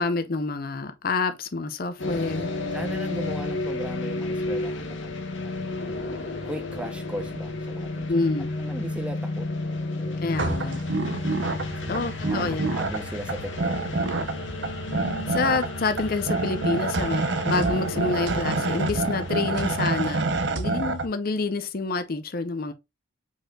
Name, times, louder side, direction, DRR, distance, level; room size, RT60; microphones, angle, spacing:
voice 1, 0.0-2.5 8.1-8.6 10.2-10.8 11.9-12.8 15.3-22.7, left 3 dB, 50° left, 0.6 m, -28 dB
sound 1, 2.0-19.8, left 2 dB, 75° left, 1.2 m, -32 dB
voice 2, 2.7-5.9 6.4-9.5 9.9-10.2 11.6-14.6, right 1 dB, 5° right, 0.8 m, -38 dB
sound 2, 10.3-21.1, right 3 dB, 65° right, 0.7 m, -28 dB
5.1 x 4.1 x 2.3 m
head